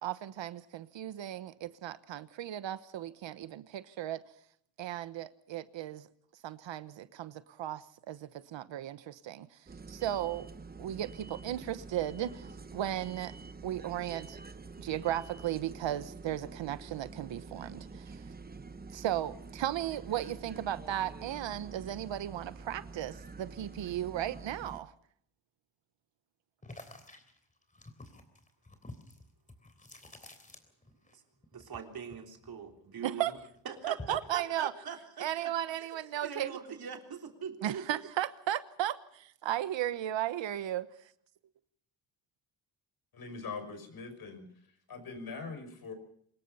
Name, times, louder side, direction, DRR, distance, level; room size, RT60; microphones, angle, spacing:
voice 1, 0.0-4.2 4.8-6.1 6.4-9.5 9.9-10.5 10.8-13.3 13.6-14.4 14.8-18.2 18.9-24.9 33.0-33.3 33.8-34.7 35.2-36.5 37.6-40.9, right 12 dB, 80° right, 1.2 m, -35 dB
sound 1, 9.7-24.8, right 4 dB, 20° right, 1.1 m, -47 dB
sound 2, 26.6-31.1 31.4-33.0 33.4-34.4, left 2 dB, 15° left, 3.4 m, -50 dB
voice 2, 31.5-33.4 33.7-35.5 35.8-36.0 36.2-37.9, right 6 dB, 55° right, 3.6 m, -42 dB
voice 3, 43.1-44.4 44.9-45.9, left 4 dB, 50° left, 6.0 m, -42 dB
25.5 x 21.0 x 5.6 m
cardioid pair, 125°, 45 cm